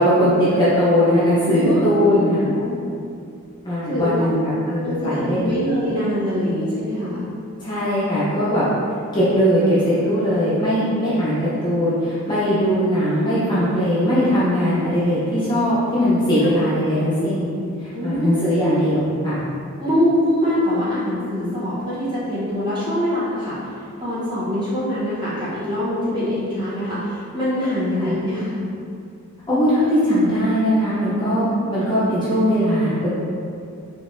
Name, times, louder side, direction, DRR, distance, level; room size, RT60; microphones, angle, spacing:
voice 1, 0.0-2.5 3.6-5.6 7.6-8.6 9.1-17.5 17.8-19.4 28.0-28.2 29.5-33.1, equal, 20° left, -11 dB, 0.9 m, -19 dB
voice 2, 1.5-2.7 3.9-4.3 4.8-7.2 16.5-16.6 17.9-18.3 19.8-23.5 24.0-28.6, equal, 20° right, -11 dB, 1.3 m, -23 dB
4.7 x 3.6 x 2.8 m, 2.4 s
head